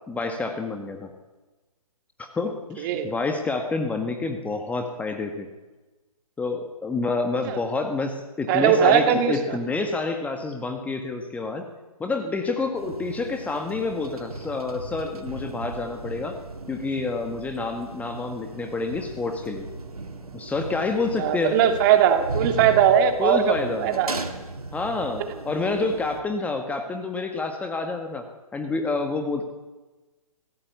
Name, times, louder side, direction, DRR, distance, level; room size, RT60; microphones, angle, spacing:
voice 1, 0.1-1.1 2.2-5.5 6.4-11.6 12.0-16.4 16.7-19.7 20.3-21.5 23.2-23.9 24.7-28.2 28.5-29.4, left 3 dB, 10° left, 5 dB, 1.6 m, -28 dB
voice 2, 2.8-3.1 7.4-7.6 8.5-9.6 21.2-24.1 25.7-25.8, right 9 dB, 35° right, 7 dB, 2.7 m, -20 dB
sound 1, 12.8-26.2, right 3 dB, 80° right, 2.6 m, -37 dB
25.0 x 16.5 x 8.3 m, 1.2 s
figure-of-eight pair, 130°, 19 cm